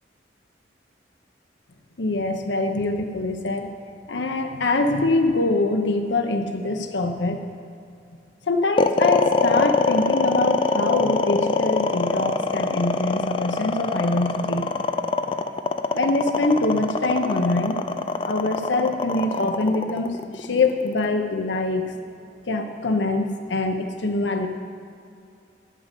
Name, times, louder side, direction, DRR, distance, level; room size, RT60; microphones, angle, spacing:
voice 1, 2.0-3.7 4.1-7.4 8.5-14.7 15.9-17.8 18.3-21.9 22.5-24.5, left 2 dB, 75° left, 5 dB, 0.8 m, -24 dB
sound 1, 8.8-21.0, left 3 dB, 30° left, 0.4 m, -23 dB
11.0 x 5.5 x 8.2 m, 2.5 s
head